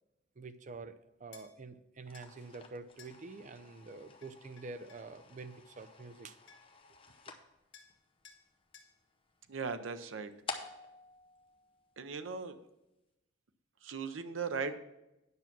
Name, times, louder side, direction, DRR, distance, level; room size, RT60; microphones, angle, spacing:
voice 1, 0.4-6.4, right 3 dB, 40° right, 12 dB, 0.5 m, -47 dB
sound 1, 1.3-1.5 2.1-2.3 3.0-3.2 4.2-5.1 6.1-6.2 6.5-6.8 7.7-8.0 8.2-8.4 8.7-8.9, left 6 dB, 70° left, 1.3 m, -57 dB
sound 2, 2.0-12.4, left 4 dB, 30° left, 0.8 m, -51 dB
voice 2, 9.5-10.3 12.0-12.6 13.8-14.8, right 5 dB, 85° right, 9 dB, 0.7 m, -38 dB
9.5 x 5.9 x 5.9 m, 0.93 s
head